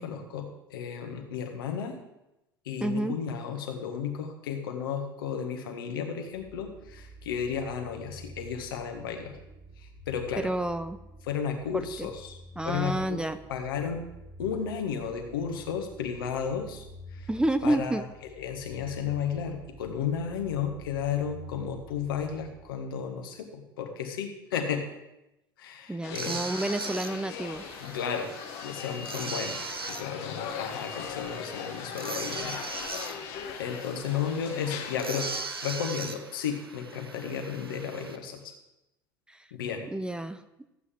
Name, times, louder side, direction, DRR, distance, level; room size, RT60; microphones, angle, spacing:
voice 1, 0.0-2.0 2.6-9.4 9.8-10.5 11.3-12.4 12.6-13.2 13.5-14.0 14.4-16.8 17.1-17.3 17.6-18.0 18.4-24.9 25.6-26.5 27.8-28.3 28.6-29.6 29.9-33.2 33.6-35.3 35.6-38.5 39.5-39.9, left 7 dB, 70° left, 4 dB, 1.5 m, -33 dB
voice 2, 2.8-3.2 10.4-11.0 11.7-12.1 12.6-13.4 17.3-18.1 25.9-27.6 39.3-39.5 39.9-40.4, right 1 dB, 5° right, 10 dB, 0.6 m, -29 dB
sound 1, 6.3-23.2, right 1 dB, 45° right, 2.8 m, -49 dB
sound 2, 26.0-35.4, left 8 dB, 55° left, 1.2 m, -40 dB
sound 3, 26.1-38.2, right 4 dB, 85° right, 0.7 m, -40 dB
14.0 x 8.2 x 3.7 m, 0.92 s
figure-of-eight pair, 65°, 12 cm